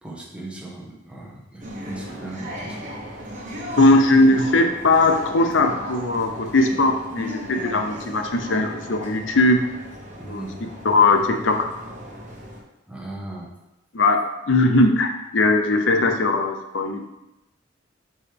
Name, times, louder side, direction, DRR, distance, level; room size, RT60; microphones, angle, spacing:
voice 1, 0.0-2.9 10.2-10.6 12.9-13.5, right 2 dB, 5° right, -3 dB, 1.3 m, -37 dB
sound 1, 1.6-12.6, equal, 45° right, 1.4 m, -36 dB
voice 2, 3.8-9.6 10.3-10.4 10.8-11.7 13.9-14.2 14.5-15.1 15.3-17.0, left 2 dB, 90° left, 5 dB, 0.8 m, -19 dB
8.5 x 4.7 x 3.5 m, 0.93 s
head